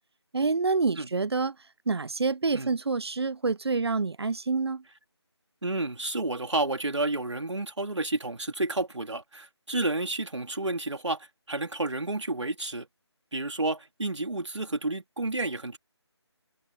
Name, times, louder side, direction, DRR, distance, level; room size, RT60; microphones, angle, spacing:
voice 1, 0.3-1.6 1.9-4.8, right 4 dB, 65° right, 0.9 m, -27 dB
voice 2, 5.6-12.9 13.3-15.8, right 2 dB, 85° right, 3.7 m, -30 dB
figure-of-eight pair, 165°, 15 cm